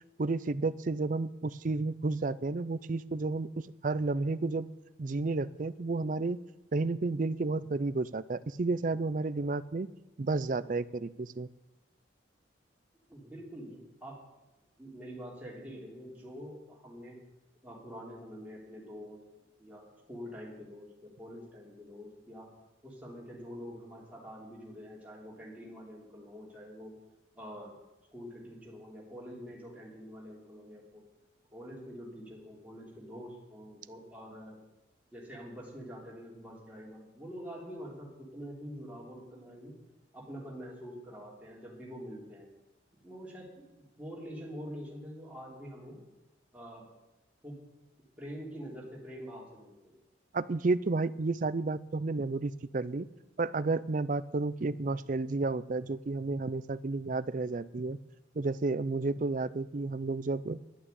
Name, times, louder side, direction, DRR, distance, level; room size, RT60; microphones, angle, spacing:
voice 1, 0.2-4.7 5.0-6.4 6.7-9.9 10.2-11.5 50.3-53.1 53.4-58.0 58.3-60.6, right 3 dB, 45° right, 16 dB, 0.4 m, -31 dB
voice 2, 13.1-14.2 14.8-17.2 17.6-19.2 19.6-22.5 22.8-26.9 27.3-27.7 28.1-31.0 31.5-34.6 35.1-39.8 40.1-42.5 43.0-46.0 46.5-46.9 47.4-47.6 48.2-50.0, equal, 10° right, -4 dB, 3.3 m, -46 dB
11.5 x 8.7 x 8.2 m, 1.0 s
head